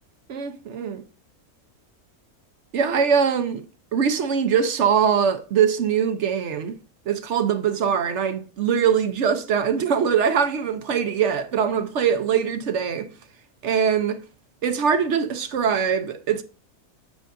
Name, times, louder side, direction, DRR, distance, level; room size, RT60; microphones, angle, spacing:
voice 1, 0.3-1.0 2.7-3.6 3.9-6.8 7.1-13.1 13.6-14.2 14.6-16.4, right 7 dB, 60° right, 0.9 m, -22 dB
9.0 x 5.6 x 2.5 m
omnidirectional pair, 1.5 m